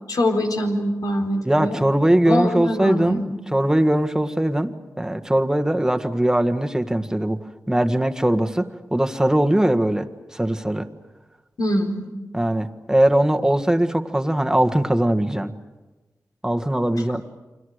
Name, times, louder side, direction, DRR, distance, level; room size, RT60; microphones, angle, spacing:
voice 1, 0.1-1.8 2.2-3.3 11.6-12.1, left 1 dB, 80° left, 2 dB, 4.3 m, -23 dB
voice 2, 1.5-3.2 3.5-7.4 7.7-10.1 10.3-10.9 12.3-15.5 16.4-17.2, right 1 dB, 10° right, 6 dB, 1.7 m, -20 dB
29.5 x 25.0 x 6.6 m, 1.2 s
cardioid pair, 65°, 6 cm